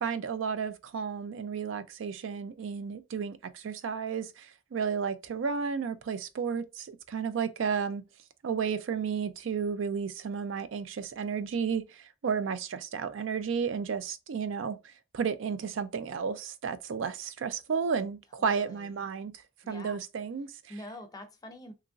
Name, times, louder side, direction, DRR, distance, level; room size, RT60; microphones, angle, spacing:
voice 1, 0.0-8.0 8.4-19.3 19.7-20.5, right 6 dB, 75° right, 0.4 m, -32 dB
voice 2, 18.4-18.9 19.6-20.0 20.7-21.7, left 1 dB, 20° left, 0.5 m, -45 dB
2.9 x 2.5 x 2.4 m
head